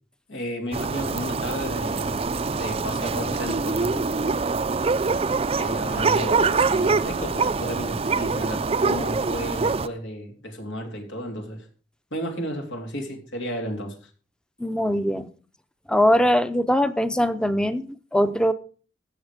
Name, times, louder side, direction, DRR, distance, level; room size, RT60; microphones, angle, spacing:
voice 1, 0.3-4.1 4.7-4.8 5.5-11.6 12.1-13.9, equal, 85° left, 3.4 m, -33 dB
sound 1, 0.7-9.9, right 4 dB, 30° right, 0.5 m, -24 dB
voice 2, 14.6-15.3 15.9-18.5, equal, 5° left, 0.7 m, -21 dB
15.5 x 7.1 x 5.0 m
head